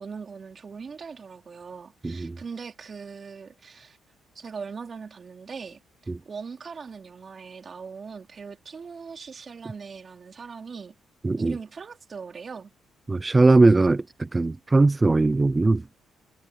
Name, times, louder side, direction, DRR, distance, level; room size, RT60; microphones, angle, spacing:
voice 1, 0.0-4.0 4.3-11.0 11.4-12.7, right 5 dB, 40° right, 4.1 m, -40 dB
voice 2, 2.0-2.3 11.2-11.5 13.1-15.8, right 3 dB, 20° right, 0.5 m, -20 dB
cardioid pair, 90°, 0 cm